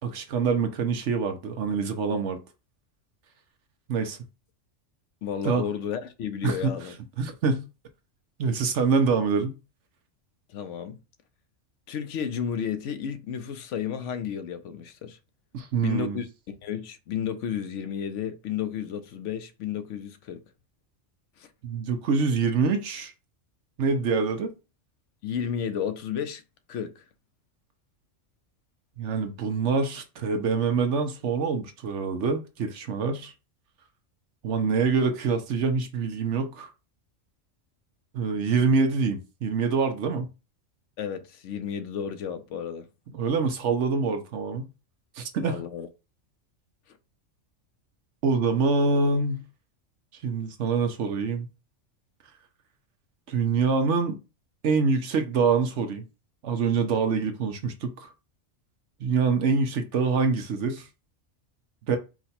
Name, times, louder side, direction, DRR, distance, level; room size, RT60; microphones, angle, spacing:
voice 1, 0.0-2.4 3.9-4.2 5.4-5.7 6.4-6.7 7.2-7.7 8.4-9.6 15.5-16.2 21.6-23.1 23.8-24.5 29.0-33.3 34.4-36.7 38.1-40.3 43.1-44.7 45.2-45.6 48.2-49.4 50.2-51.5 53.3-54.2 54.6-56.0 56.4-58.1 59.0-60.8 61.9-62.0, right 5 dB, 70° right, 1.0 m, -25 dB
voice 2, 5.2-7.0 10.5-11.0 11.9-15.2 15.8-20.4 21.4-21.5 25.2-26.4 26.7-27.0 41.0-42.9 45.4-45.9, left 8 dB, 70° left, 0.9 m, -32 dB
4.8 x 2.2 x 4.2 m
omnidirectional pair, 1.3 m